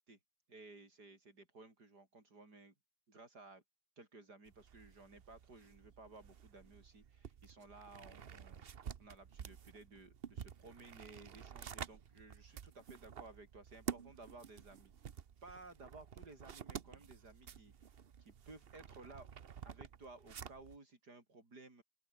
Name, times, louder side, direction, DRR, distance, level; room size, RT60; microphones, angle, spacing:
voice 1, 0.5-2.7 3.1-3.6 4.0-14.9 15.4-17.9 18.2-19.3 19.6-21.8, right 3 dB, 90° right, 5.8 m, -57 dB
sound 1, 4.5-20.8, right 8 dB, 45° right, 0.9 m, -51 dB
open air
omnidirectional pair, 1.7 m